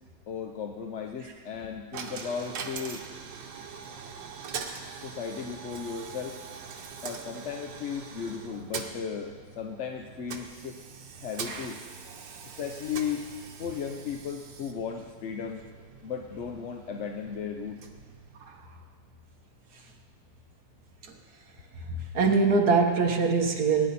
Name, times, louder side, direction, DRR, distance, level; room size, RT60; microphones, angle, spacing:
voice 1, 0.3-3.0 5.0-6.4 7.0-10.8 11.2-11.8 12.6-13.3 13.6-15.6 16.0-17.8, left 7 dB, 55° left, 3 dB, 0.8 m, -35 dB
Coin (dropping), 1.9-18.9, right 6 dB, 90° right, 1.7 m, -43 dB
voice 2, 22.1-23.9, right 4 dB, 60° right, 3 dB, 1.7 m, -23 dB
19.5 x 10.5 x 4.2 m, 1.5 s
omnidirectional pair, 1.9 m